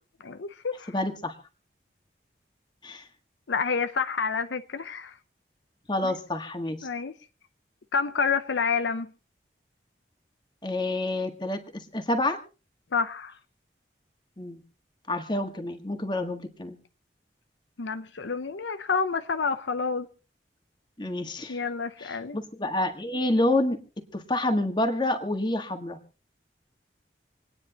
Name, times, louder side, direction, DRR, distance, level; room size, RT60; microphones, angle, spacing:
voice 1, 0.2-0.9 3.5-5.2 6.0-6.2 6.8-7.1 7.9-9.1 12.9-13.3 17.8-20.1 21.5-22.4, left 5 dB, 85° left, 0.7 m, -28 dB
voice 2, 0.9-1.3 2.8-3.0 5.9-6.9 10.6-12.4 14.4-14.6 15.1-16.8 21.0-21.6 22.0-23.8 24.1-26.0, left 1 dB, 25° left, 1.6 m, -28 dB
27.5 x 9.7 x 2.9 m
head